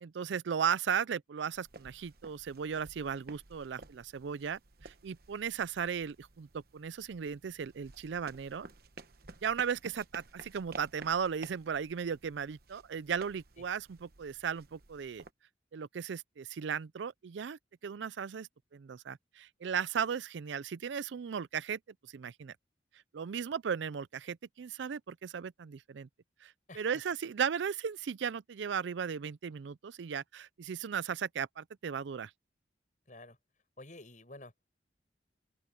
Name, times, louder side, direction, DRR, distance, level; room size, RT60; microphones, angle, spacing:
voice 1, 0.0-8.7 9.4-15.2 15.7-21.8 22.1-22.5 23.1-26.1 26.4-32.3, right 7 dB, 80° right, 0.4 m, -36 dB
sound 1, 1.5-15.3, right 3 dB, 55° right, 1.1 m, -54 dB
voice 2, 33.1-33.4 33.8-34.7, left 2 dB, 45° left, 7.8 m, -50 dB
open air
head